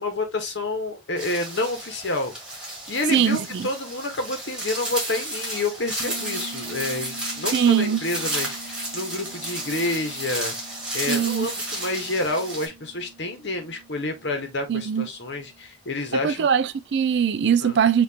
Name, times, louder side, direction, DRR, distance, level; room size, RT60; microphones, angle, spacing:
voice 1, 0.0-2.3 2.9-16.5 17.6-17.8, left 2 dB, 65° left, 1.3 m, -29 dB
sound 1, 1.2-12.7, right 1 dB, 5° right, 1.8 m, -32 dB
voice 2, 3.1-3.7 7.5-8.0 11.1-11.5 14.7-15.1 16.2-18.0, right 8 dB, 60° right, 0.4 m, -21 dB
Bass guitar, 6.0-15.7, right 3 dB, 30° right, 0.9 m, -45 dB
5.8 x 2.6 x 2.8 m
head